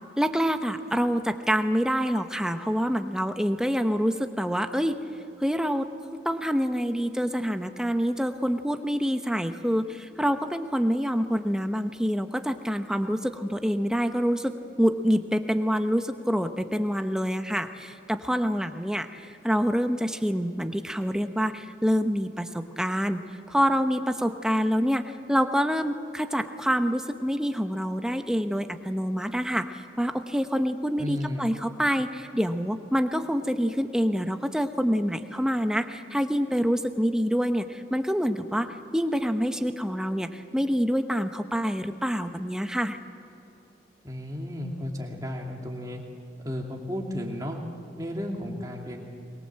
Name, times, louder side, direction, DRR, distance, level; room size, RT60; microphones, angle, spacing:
voice 1, 0.2-5.0 5.4-5.9 6.2-23.2 23.5-43.0, equal, 5° right, 7 dB, 0.9 m, -26 dB
voice 2, 31.0-31.5 44.0-46.0 46.4-47.6 48.0-49.0, left 1 dB, 20° right, 0 dB, 2.6 m, -33 dB
23.0 x 22.0 x 7.6 m, 2.8 s
head